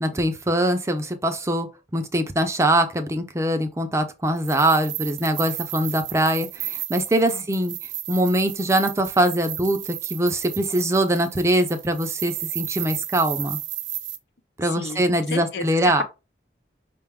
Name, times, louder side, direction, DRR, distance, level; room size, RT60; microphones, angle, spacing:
voice 1, 0.0-1.7 1.9-7.7 8.1-13.6 14.6-16.0, right 1 dB, 15° right, 0.4 m, -22 dB
sound 1, 4.4-14.2, right 13 dB, 85° right, 0.5 m, -33 dB
voice 2, 14.6-16.0, left 3 dB, 75° left, 0.6 m, -32 dB
5.3 x 2.2 x 3.4 m
head